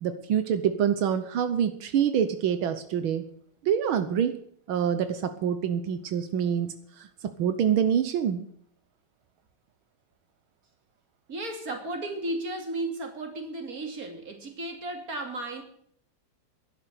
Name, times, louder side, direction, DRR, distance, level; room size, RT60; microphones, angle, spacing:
voice 1, 0.0-3.2 3.6-4.4 4.7-7.1 7.4-8.5, right 8 dB, 85° right, 10 dB, 1.8 m, -26 dB
voice 2, 11.3-15.6, right 2 dB, 45° right, 4 dB, 3.1 m, -34 dB
12.0 x 11.0 x 8.2 m, 0.65 s
omnidirectional pair, 2.2 m